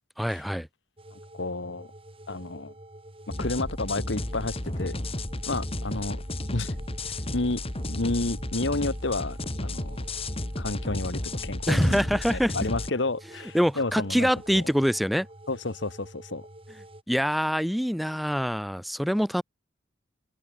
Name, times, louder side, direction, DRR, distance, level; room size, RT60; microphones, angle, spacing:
voice 1, 0.2-0.7 11.7-12.5 13.5-15.3 17.1-19.4, equal, ahead, 0.5 m, -25 dB
sound 1, 1.0-17.0, right 1 dB, 30° right, 8.0 m, -48 dB
voice 2, 1.1-1.9 2.3-2.7 3.4-4.9 5.5-6.2 6.5-6.7 7.3-7.6 7.9-10.0 10.6-14.6 15.5-16.4, left 2 dB, 75° left, 1.6 m, -31 dB
sound 2, 3.3-12.9, left 1 dB, 30° left, 2.6 m, -33 dB
head